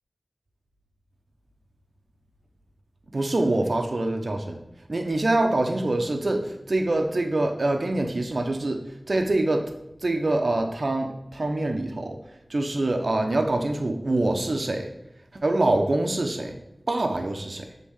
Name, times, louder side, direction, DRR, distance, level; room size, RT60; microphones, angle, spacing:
voice 1, 3.1-4.6 4.9-9.7 10.0-12.2 12.5-14.9 15.4-16.5 16.9-17.7, right 2 dB, 65° right, 5 dB, 0.8 m, -25 dB
7.3 x 3.7 x 3.6 m, 0.90 s
wide cardioid pair, 60°, 0 cm